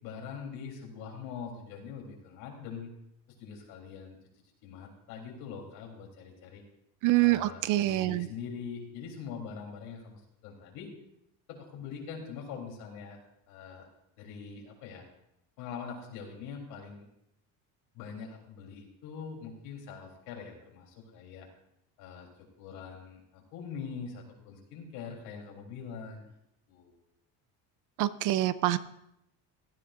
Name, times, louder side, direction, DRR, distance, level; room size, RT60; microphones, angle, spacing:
voice 1, 0.0-2.9 3.4-4.2 4.6-6.6 7.2-10.9 11.5-13.2 13.5-13.9 14.2-15.0 15.6-17.1 17.9-21.5 22.0-26.3 26.7-27.0, left 6 dB, 75° left, 0 dB, 3.5 m, -43 dB
voice 2, 7.0-8.3 28.0-28.8, right 16 dB, 55° right, 15 dB, 0.6 m, -26 dB
16.5 x 14.0 x 2.5 m, 0.80 s
cardioid pair, 160°, 38 cm